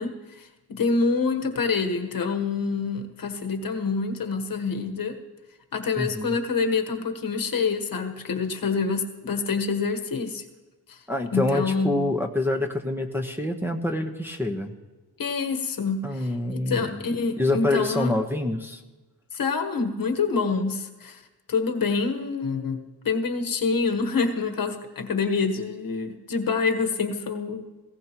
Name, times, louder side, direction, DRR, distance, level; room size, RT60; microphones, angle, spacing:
voice 1, 0.0-5.2 5.7-10.4 10.9-11.0 11.3-12.1 15.2-18.1 19.3-21.2 21.5-27.7, left 4 dB, 50° left, 4 dB, 1.3 m, -27 dB
voice 2, 6.0-6.3 11.1-14.7 16.0-17.0 17.4-18.8, left 2 dB, 5° right, 1 dB, 1.0 m, -26 dB
18.5 x 16.0 x 3.0 m, 1.2 s
cardioid pair, 95°, 43 cm